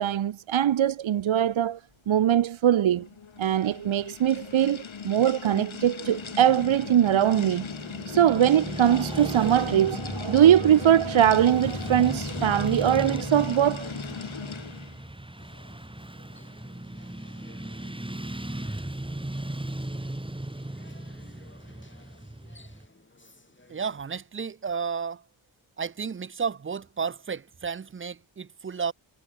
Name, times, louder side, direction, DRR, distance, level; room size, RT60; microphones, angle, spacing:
voice 1, 0.0-1.8 2.1-3.1 3.4-7.7 8.1-13.9, right 10 dB, 70° right, 0.7 m, -22 dB
sound 1, 2.9-15.0, left 6 dB, 70° left, 3.3 m, -38 dB
Motorcycle / Traffic noise roadway noise, 6.2-22.9, right 1 dB, 10° right, 2.2 m, -37 dB
sound 2, 15.4-24.0, left 2 dB, 25° left, 6.0 m, -57 dB
voice 2, 23.7-25.2 25.8-28.9, right 6 dB, 25° right, 0.4 m, -32 dB
wide cardioid pair, 110°, 49 cm